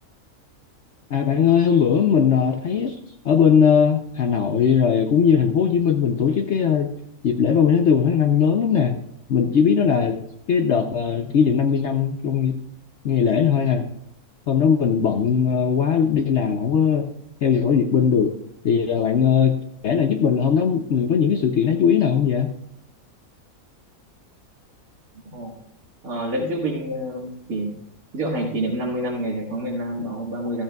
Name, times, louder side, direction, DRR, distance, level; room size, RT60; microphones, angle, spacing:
voice 1, 1.1-3.0 3.2-6.9 7.2-9.0 9.3-10.2 10.5-12.6 13.0-13.9 14.5-17.1 17.4-18.3 18.6-22.5, left 7 dB, 60° left, 5 dB, 0.9 m, -19 dB
voice 2, 26.0-27.8 28.1-30.6, right 1 dB, 85° right, -5 dB, 2.1 m, -27 dB
14.0 x 13.0 x 2.3 m, 0.73 s
omnidirectional pair, 1.5 m